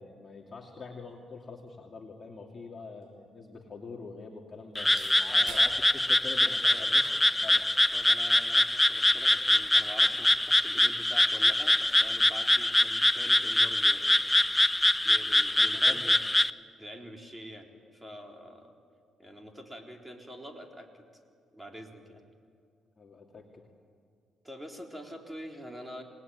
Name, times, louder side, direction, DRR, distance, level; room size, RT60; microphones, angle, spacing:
voice 1, 0.0-5.7 6.1-7.1 7.4-7.7 15.6-16.0 23.0-23.7, left 4 dB, 35° left, 0 dB, 2.6 m, -45 dB
sound 1, 3.0-10.4, right 5 dB, 75° right, 6.7 m, -54 dB
Frog, 4.8-16.5, left 1 dB, 10° left, 0.6 m, -24 dB
voice 2, 5.3-5.8 6.7-6.9 7.9-14.0 15.0-16.2 16.8-18.7 19.2-21.1 21.5-22.2 24.4-26.0, equal, 10° right, 2 dB, 4.0 m, -45 dB
27.0 x 19.5 x 9.6 m, 2.3 s
cardioid pair, 90°, 0 cm